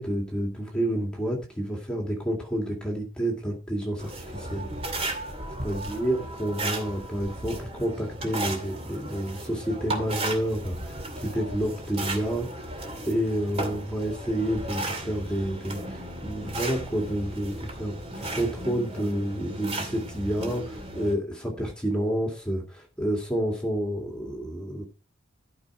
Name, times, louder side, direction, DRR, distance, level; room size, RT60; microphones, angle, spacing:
voice 1, 0.0-4.7 5.6-12.6 13.1-17.9 18.3-24.8, right 1 dB, 5° left, 1 dB, 2.3 m, -29 dB
sound 1, 4.0-21.1, right 1 dB, 30° right, 2.4 m, -35 dB
13.0 x 5.5 x 4.9 m, 0.32 s
head